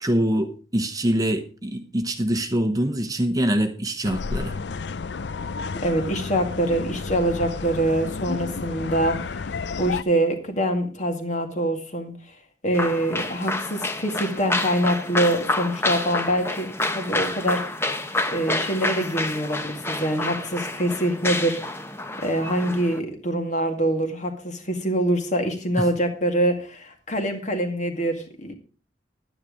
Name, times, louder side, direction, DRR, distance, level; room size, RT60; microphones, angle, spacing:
voice 1, 0.0-4.6 25.8-25.9, right 1 dB, 20° right, 7 dB, 1.0 m, -24 dB
sound 1, 4.0-10.0, left 4 dB, 70° left, 0.5 m, -31 dB
voice 2, 5.8-9.5 9.8-12.1 12.6-17.6 18.3-21.6 22.2-28.5, right 1 dB, 40° left, 5 dB, 2.1 m, -24 dB
sound 2, 12.7-23.0, left 2 dB, 15° left, 0.9 m, -28 dB
10.5 x 9.7 x 5.0 m, 0.37 s
head